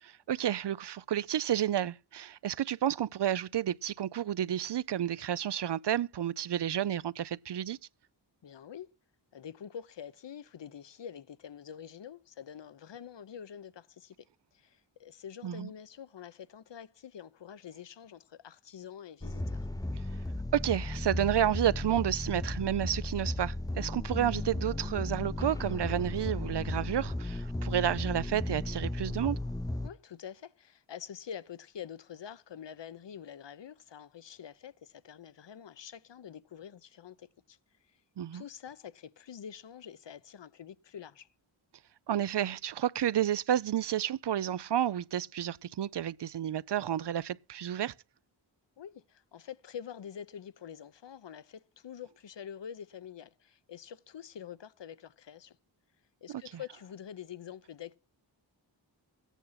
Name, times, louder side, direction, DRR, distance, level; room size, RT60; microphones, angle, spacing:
voice 1, 0.0-7.8 15.4-15.7 20.5-29.4 38.2-38.4 42.1-47.9 56.3-56.4, right 10 dB, 60° right, 0.5 m, -31 dB
voice 2, 8.4-8.9 9.3-14.3 14.5-19.7 29.8-37.6 37.9-38.0 38.3-41.3 48.8-55.6 56.2-58.0, left 8 dB, 65° left, 0.8 m, -46 dB
sound 1, 19.2-29.9, left 2 dB, 10° left, 0.6 m, -35 dB
14.5 x 9.2 x 5.7 m
cardioid pair, 50°, 47 cm